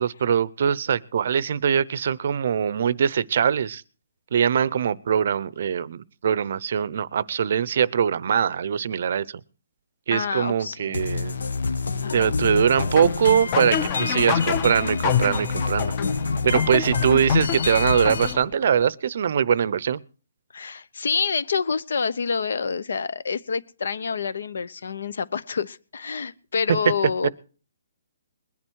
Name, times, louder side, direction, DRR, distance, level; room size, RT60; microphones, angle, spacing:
voice 1, 0.0-3.8 4.3-9.3 10.1-11.4 12.1-15.9 16.4-20.0, right 8 dB, 45° right, 0.7 m, -22 dB
voice 2, 10.1-11.0 12.0-12.4 20.5-27.3, left 5 dB, 65° left, 0.9 m, -27 dB
sound 1, 10.9-18.3, left 4 dB, 85° left, 1.7 m, -27 dB
sound 2, 12.8-18.7, left 8 dB, 20° left, 0.7 m, -27 dB
21.0 x 11.0 x 4.7 m
hypercardioid pair, 175°, 0 cm